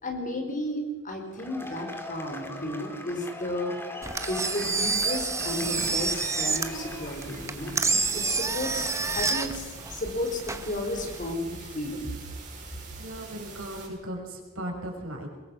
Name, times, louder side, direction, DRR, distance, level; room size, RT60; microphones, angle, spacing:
voice 1, 0.0-3.8 4.3-7.7 8.1-12.1, left 1 dB, 40° left, 4 dB, 4.2 m, -33 dB
Cheering / Applause / Crowd, 1.3-8.1, left 1 dB, 10° left, 2.5 m, -40 dB
Engine, 4.0-11.3, right 4 dB, 15° right, 1.4 m, -29 dB
sound 1, 5.4-13.9, right 4 dB, 40° right, 6.7 m, -45 dB
voice 2, 13.0-15.3, right 1 dB, 90° right, 2 dB, 5.6 m, -37 dB
23.0 x 22.0 x 6.3 m, 1.3 s
head